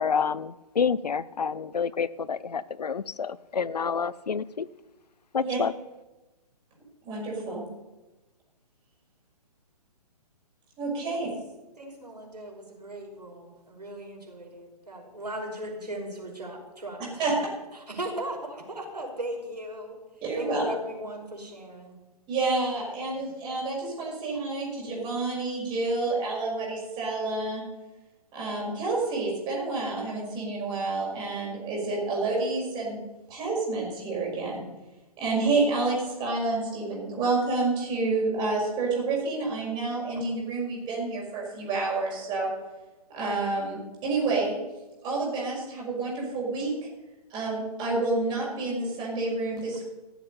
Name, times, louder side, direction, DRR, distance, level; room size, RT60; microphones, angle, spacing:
voice 1, 0.0-4.7 5.3-5.7, left 6 dB, 80° left, 19 dB, 0.7 m, -28 dB
voice 2, 7.0-7.6 10.8-11.3 17.2-17.4 20.2-20.6 22.3-27.6 28.3-33.0 33.3-34.6 35.2-42.5 43.1-44.6 45.0-46.9 47.3-49.9, right 3 dB, 20° right, -3 dB, 5.7 m, -29 dB
voice 3, 11.8-17.0 17.9-20.0 20.4-22.0, right 1 dB, 90° right, 0 dB, 5.4 m, -37 dB
15.0 x 8.2 x 8.2 m, 1.1 s
figure-of-eight pair, 135°, 20 cm